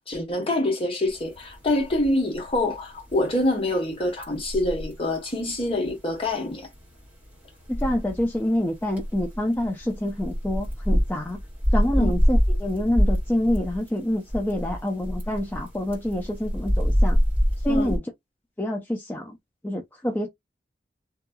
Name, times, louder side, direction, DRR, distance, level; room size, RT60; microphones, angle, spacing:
voice 1, 0.1-6.7 12.0-12.1 17.7-18.0, left 1 dB, 35° left, 1.0 m, -26 dB
sound 1, 1.1-18.0, equal, 10° right, 1.5 m, -26 dB
voice 2, 7.7-11.4 11.7-17.2 17.6-18.0 18.6-19.4 19.6-20.3, left 1 dB, 10° left, 0.4 m, -27 dB
2.9 x 2.6 x 2.2 m
head